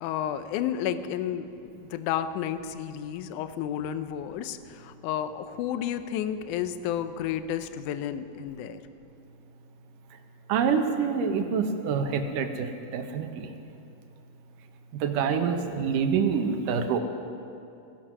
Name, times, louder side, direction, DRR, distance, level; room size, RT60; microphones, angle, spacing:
voice 1, 0.0-8.8, left 10 dB, 80° left, 11 dB, 1.8 m, -31 dB
voice 2, 10.5-13.5 15.0-17.0, right 6 dB, 70° right, 7 dB, 2.3 m, -26 dB
16.5 x 14.5 x 6.1 m, 2.6 s
omnidirectional pair, 4.3 m